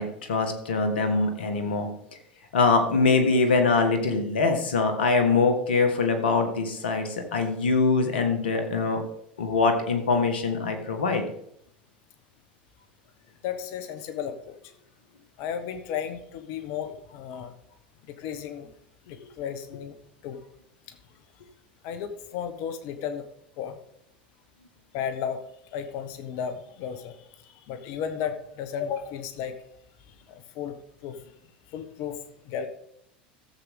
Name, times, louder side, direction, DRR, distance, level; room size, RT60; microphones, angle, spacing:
voice 1, 0.0-1.9 2.5-9.0 9.4-11.2, left 4 dB, 85° left, 6 dB, 1.8 m, -23 dB
voice 2, 13.4-14.6 15.4-17.5 18.0-18.7 19.0-20.0 20.2-20.4 20.9-21.0 21.8-23.3 23.6-23.8 24.9-25.4 25.7-29.6 30.1-30.8 31.0-31.3 31.7-32.2 32.4-32.7, left 8 dB, 60° left, 10 dB, 1.2 m, -34 dB
14.5 x 7.7 x 3.7 m, 0.73 s
hypercardioid pair, 85°, 5 cm